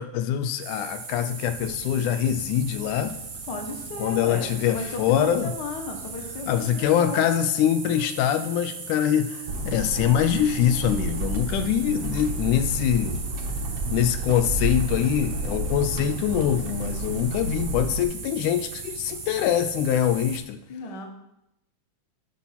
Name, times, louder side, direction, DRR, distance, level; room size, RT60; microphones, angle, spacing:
voice 1, 0.0-3.1 4.0-5.5 6.5-13.2 13.9-20.6, left 10 dB, 85° left, 10 dB, 2.1 m, -24 dB
sound 1, 0.6-20.4, right 5 dB, 80° right, 3.3 m, -38 dB
voice 2, 3.5-7.2 20.7-21.1, left 3 dB, 45° left, 2 dB, 1.5 m, -35 dB
sound 2, 9.5-18.0, right 2 dB, 60° right, 1.7 m, -30 dB
10.0 x 5.9 x 5.8 m, 0.82 s
omnidirectional pair, 3.6 m